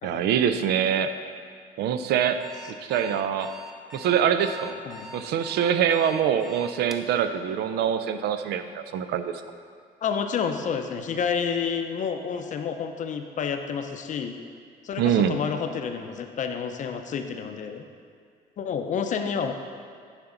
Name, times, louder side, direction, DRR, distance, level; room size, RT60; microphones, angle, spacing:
voice 1, 0.0-1.1 1.8-2.4 2.8-3.5 3.9-4.8 5.1-9.3 15.0-15.4, right 8 dB, 75° right, 9 dB, 0.5 m, -24 dB
Alarm, 2.4-7.1, left 1 dB, ahead, 0.5 m, -43 dB
voice 2, 10.0-14.3 14.8-17.8 18.6-19.5, left 6 dB, 45° left, 6 dB, 0.6 m, -29 dB
10.5 x 4.5 x 3.8 m, 2.3 s
cardioid pair, 110°, 17 cm